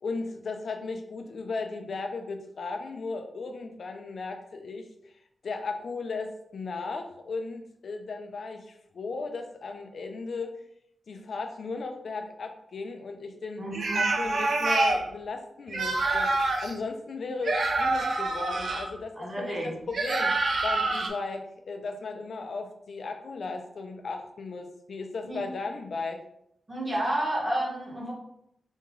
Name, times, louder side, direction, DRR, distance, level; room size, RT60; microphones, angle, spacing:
voice 1, 0.0-5.1 5.4-10.5 11.1-13.6 13.9-20.3 20.6-26.2, left 3 dB, 65° left, 5 dB, 0.5 m, -36 dB
voice 2, 13.6-14.0 19.1-19.8 25.2-25.4 26.7-28.1, right 1 dB, 30° right, -3 dB, 1.5 m, -30 dB
sound 1, 13.7-15.0 15.7-16.7 17.4-18.9 19.9-21.1, right 2 dB, 60° right, 0.6 m, -26 dB
3.5 x 3.1 x 3.7 m, 0.75 s
wide cardioid pair, 90°, 0 cm